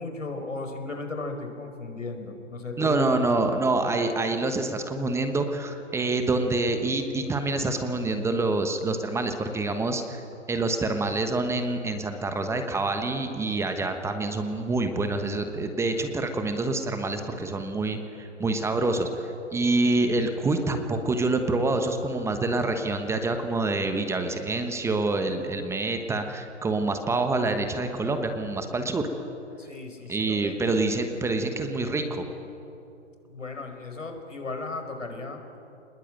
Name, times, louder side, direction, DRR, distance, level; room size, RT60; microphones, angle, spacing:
voice 1, 0.0-3.5 29.6-30.8 33.3-35.5, left 3 dB, 90° left, 5 dB, 4.9 m, -36 dB
voice 2, 2.8-29.1 30.1-32.2, right 2 dB, 5° right, 6 dB, 1.1 m, -26 dB
25.5 x 20.5 x 9.2 m, 2.9 s
hypercardioid pair, 130°, 37 cm